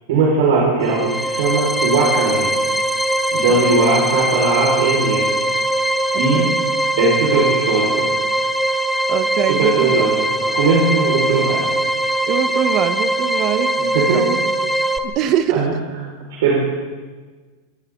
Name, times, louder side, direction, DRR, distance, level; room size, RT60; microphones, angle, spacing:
voice 1, 0.1-2.5 3.3-5.3 6.2-6.5 7.0-8.1 9.5-11.7 13.9-14.2 15.5-15.7 16.3-16.7, right 3 dB, 75° right, -4 dB, 5.7 m, -18 dB
sound 1, 0.8-15.0, right 1 dB, 5° left, 1.1 m, -21 dB
voice 2, 6.1-6.6 9.1-9.9 12.3-14.7 15.0-15.7 16.5-16.6, right 10 dB, 40° right, 10 dB, 1.5 m, -23 dB
27.0 x 26.5 x 4.0 m, 1.4 s
supercardioid pair, 150°, 0 cm